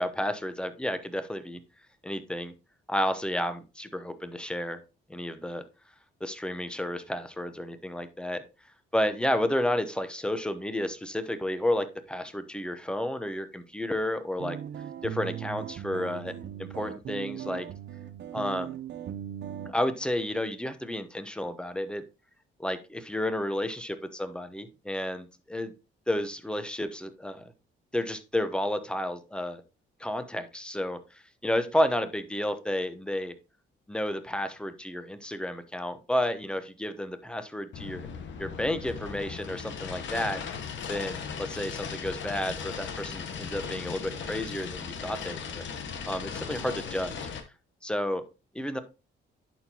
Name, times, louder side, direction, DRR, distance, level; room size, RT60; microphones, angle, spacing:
voice 1, 0.0-1.6 2.0-2.5 2.9-4.8 5.1-5.6 6.2-8.4 8.9-14.6 15.0-16.3 16.6-17.7 18.3-18.8 19.6-22.0 22.6-25.7 26.1-27.4 27.9-29.6 30.0-33.3 33.9-38.1 38.4-40.4 40.9-45.6 46.0-47.1 47.8-48.2 48.5-48.8, left 1 dB, 5° left, 10 dB, 0.9 m, -31 dB
sound 1, 14.4-19.7, right 10 dB, 60° right, 0.7 m, -38 dB
sound 2, 37.7-47.4, left 6 dB, 70° left, 1.1 m, -37 dB
11.0 x 4.4 x 2.9 m, 0.30 s
cardioid pair, 90°, 20 cm